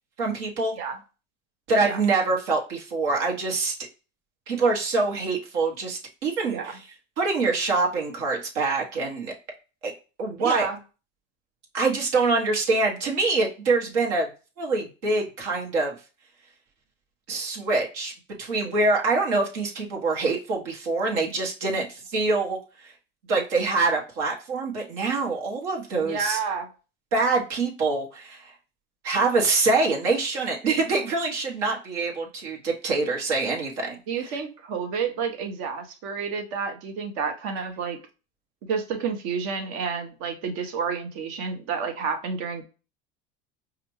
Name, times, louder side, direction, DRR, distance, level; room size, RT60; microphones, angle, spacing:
voice 1, 0.2-0.7 1.7-3.7 4.5-6.8 7.2-9.3 9.8-9.9 10.2-10.7 11.7-14.3 14.6-15.9 17.3-18.1 18.4-22.6 23.3-26.4 27.1-28.4 29.0-34.4, right 3 dB, 80° right, 0 dB, 1.3 m, -25 dB
voice 2, 10.4-10.8 26.0-26.7 34.1-38.0 38.7-42.6, right 5 dB, 65° right, 5 dB, 1.1 m, -30 dB
4.9 x 2.4 x 3.1 m, 0.32 s
hypercardioid pair, 85°, 34 cm